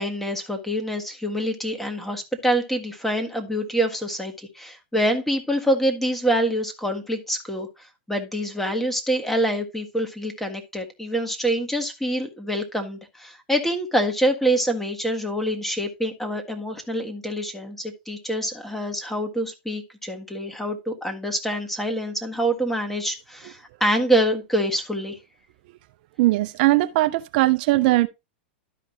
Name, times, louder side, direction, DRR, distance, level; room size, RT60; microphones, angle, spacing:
voice 1, 0.0-25.2, right 1 dB, 5° left, 1.6 m, -26 dB
voice 2, 26.2-28.1, right 18 dB, 55° right, 0.5 m, -19 dB
12.5 x 5.2 x 2.8 m
hypercardioid pair, 120°, 6 cm